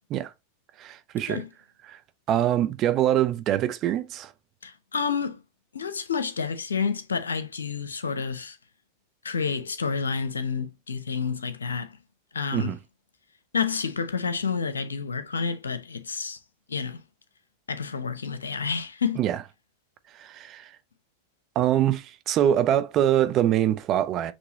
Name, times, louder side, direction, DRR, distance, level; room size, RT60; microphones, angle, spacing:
voice 1, 0.8-1.4 1.9-2.0 2.3-4.3 12.5-12.8 19.2-19.4 20.1-20.8 21.6-24.3, right 11 dB, 40° right, 0.6 m, -24 dB
voice 2, 4.6-5.4 5.7-8.6 9.2-11.9 12.3-12.7 13.5-16.4 16.7-17.0 17.7-19.2, left 5 dB, 90° left, 0.8 m, -29 dB
6.2 x 3.1 x 2.7 m
hypercardioid pair, 100°, 0 cm